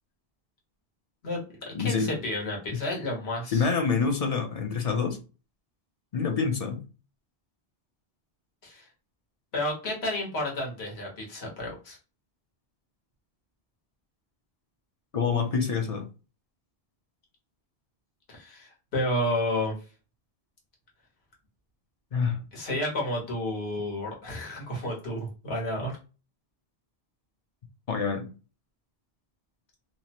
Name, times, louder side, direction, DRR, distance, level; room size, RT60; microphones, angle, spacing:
voice 1, 1.2-3.6 8.6-8.9 9.5-12.0 18.3-19.7 22.5-25.9, left 1 dB, 75° left, -1 dB, 1.3 m, -31 dB
voice 2, 1.7-2.2 2.7-2.8 3.5-5.2 6.1-6.8 15.1-16.1 22.1-22.5 27.9-28.3, left 5 dB, 50° left, 4 dB, 0.5 m, -27 dB
2.8 x 2.0 x 2.8 m, 0.33 s
omnidirectional pair, 1.1 m